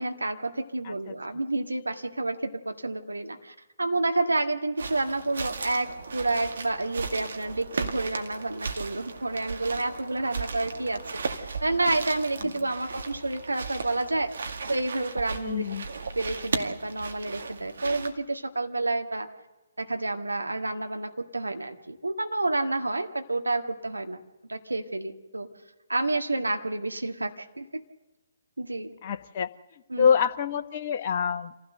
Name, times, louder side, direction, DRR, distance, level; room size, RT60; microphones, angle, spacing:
voice 1, 0.0-11.0 11.3-14.3 14.7-15.6 16.1-19.3 19.8-24.2 24.5-25.5 25.9-27.8 28.6-28.9 29.9-30.1, right 2 dB, 80° right, 5 dB, 1.8 m, -29 dB
sound 1, 4.8-18.1, right 4 dB, 60° right, 2.1 m, -36 dB
voice 2, 15.3-15.9 29.0-29.5 30.0-31.5, left 7 dB, 40° left, 7 dB, 1.0 m, -26 dB
26.5 x 16.0 x 6.7 m, 1.1 s
figure-of-eight pair, 135°, 0 cm